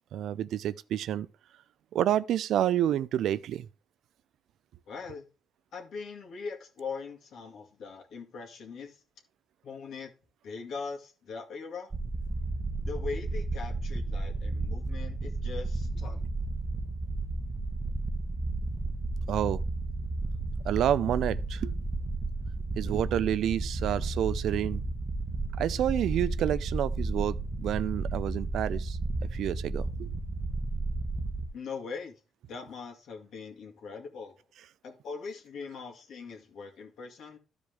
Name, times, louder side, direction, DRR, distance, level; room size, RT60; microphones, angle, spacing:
voice 1, 0.1-1.3 1.9-3.7 19.3-19.6 20.6-21.7 22.8-24.8 25.6-29.0 29.3-30.1, right 11 dB, 75° right, 0.4 m, -29 dB
voice 2, 4.9-5.3 5.7-9.0 9.6-10.1 10.4-11.9 12.8-16.2 31.5-32.1 32.5-34.4 34.8-37.4, left 5 dB, 70° left, 2.1 m, -41 dB
sound 1, 11.9-31.5, right 2 dB, 25° right, 1.0 m, -33 dB
13.5 x 4.9 x 3.4 m
cardioid pair, 90°, 0 cm